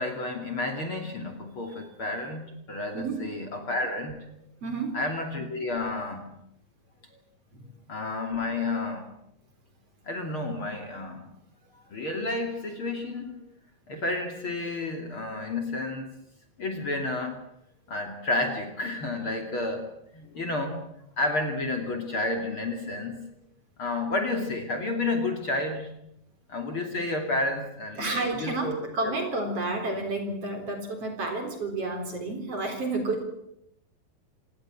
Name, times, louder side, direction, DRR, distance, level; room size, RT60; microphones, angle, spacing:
voice 1, 0.0-2.4 2.7-4.2 4.9-6.2 7.9-9.1 10.0-11.3 11.9-13.3 13.9-16.1 16.6-17.4 17.9-19.8 20.1-20.8 21.2-23.3 23.8-25.9 26.5-29.1, left 2 dB, 40° left, 4 dB, 3.3 m, -31 dB
voice 2, 4.6-5.0 7.5-7.7 28.0-33.2, right 2 dB, 40° right, 4 dB, 4.8 m, -30 dB
27.0 x 19.0 x 7.7 m, 0.77 s
omnidirectional pair, 4.1 m